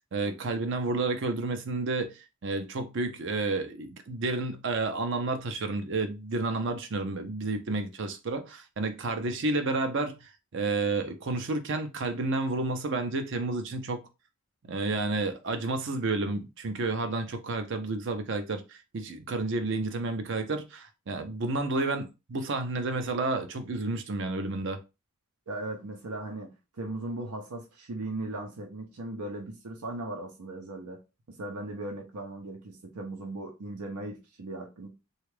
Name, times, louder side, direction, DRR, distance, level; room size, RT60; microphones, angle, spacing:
voice 1, 0.0-14.0 14.7-24.8, right 3 dB, 55° right, 0.5 m, -31 dB
voice 2, 25.5-26.5 26.7-31.0 31.3-34.9, right 2 dB, 90° right, 0.7 m, -38 dB
3.3 x 2.4 x 3.2 m
head